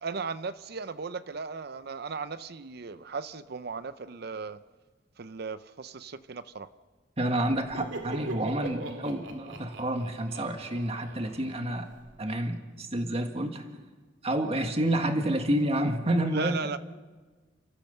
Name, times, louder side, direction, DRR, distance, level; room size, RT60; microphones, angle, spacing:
voice 1, 0.0-4.6 5.2-6.7 16.3-16.8, right 4 dB, 55° right, 14 dB, 0.6 m, -36 dB
voice 2, 7.2-11.9 12.2-13.6 14.2-16.6, right 1 dB, 35° right, 5 dB, 1.8 m, -29 dB
Laughter, 7.5-12.2, right 2 dB, 85° right, 2.3 m, -41 dB
29.5 x 15.0 x 6.7 m, 1.4 s
head